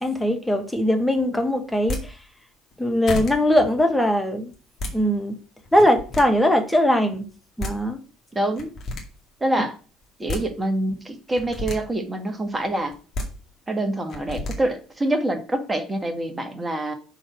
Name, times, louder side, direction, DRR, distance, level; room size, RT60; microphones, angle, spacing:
voice 1, 0.0-2.1 2.8-4.5 4.9-5.3 5.7-7.3 7.6-8.0, equal, 5° left, 5 dB, 1.6 m, -20 dB
sound 1, 1.7-2.0 2.7-2.8 3.1-3.3 4.5-4.9 5.7-6.2 7.3-7.4 7.6-7.7 8.6-9.0 10.0-10.4 11.3-11.8 12.9-13.3 14.1-14.6, left 2 dB, 40° left, 2.2 m, -30 dB
voice 2, 8.3-8.7 9.4-9.7 10.2-12.9 13.7-16.9, right 1 dB, 15° right, 5 dB, 1.7 m, -26 dB
5.8 x 4.7 x 6.2 m, 0.37 s
figure-of-eight pair, 60°, 0 cm